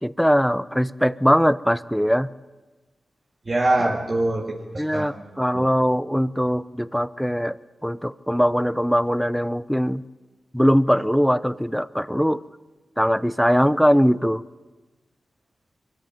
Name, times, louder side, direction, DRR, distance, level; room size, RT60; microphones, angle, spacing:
voice 1, 0.0-2.3 4.8-10.0 10.5-12.4 13.0-14.4, equal, ahead, 17 dB, 0.6 m, -21 dB
voice 2, 3.5-5.7, right 2 dB, 40° right, 0 dB, 2.0 m, -24 dB
23.0 x 14.5 x 9.2 m, 1.2 s
cardioid pair, 60°, 0 cm